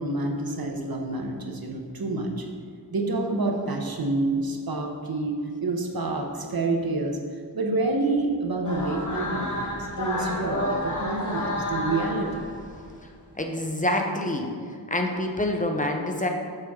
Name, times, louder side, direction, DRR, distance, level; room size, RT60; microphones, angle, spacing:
voice 1, 0.0-2.5 2.9-7.2 7.5-12.5, right 2 dB, 55° right, 2 dB, 0.9 m, -28 dB
sound 1, 8.6-13.0, left 1 dB, 40° left, 1.3 m, -30 dB
voice 2, 13.4-14.5 14.9-16.3, left 1 dB, 20° left, 3 dB, 0.7 m, -26 dB
6.6 x 6.3 x 3.6 m, 2.1 s
wide cardioid pair, 85°, 44 cm